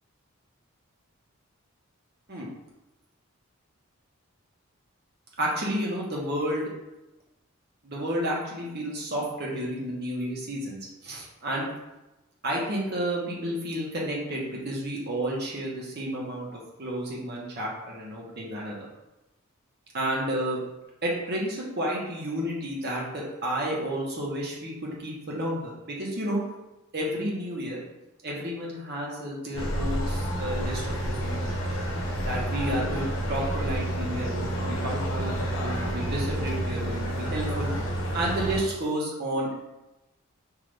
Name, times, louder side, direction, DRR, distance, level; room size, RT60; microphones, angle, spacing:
voice 1, 5.4-6.7 7.8-11.7 12.4-18.8 19.9-20.6 21.0-26.4 26.9-27.8 28.2-31.7 32.2-37.7 38.1-39.5, right 1 dB, 50° right, -3 dB, 1.2 m, -31 dB
sound 1, 29.5-38.6, right 1 dB, 65° left, 1.1 m, -29 dB
5.7 x 2.7 x 3.3 m, 0.99 s
head